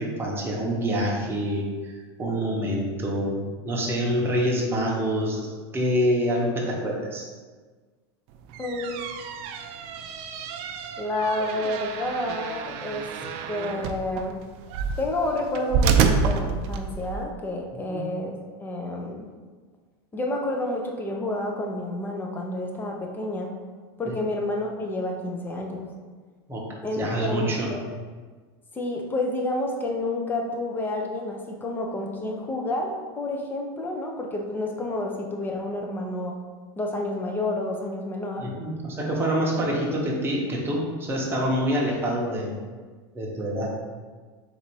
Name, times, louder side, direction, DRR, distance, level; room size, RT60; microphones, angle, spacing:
voice 1, 0.0-7.2 17.9-18.1 24.0-24.2 26.5-26.6 26.9-27.7 38.4-42.6 43.1-43.7, equal, 15° right, -3 dB, 1.0 m, -26 dB
sound 1, 8.4-17.2, right 5 dB, 50° right, 0.4 m, -28 dB
voice 2, 8.6-9.1 11.0-13.1 13.5-14.4 15.0-18.3 18.6-19.3 20.1-23.5 24.0-25.8 26.8-27.9 28.7-36.4 36.8-38.5, left 1 dB, 15° left, 1 dB, 0.7 m, -29 dB
4.0 x 2.7 x 4.6 m, 1.4 s
supercardioid pair, 130°, 14 cm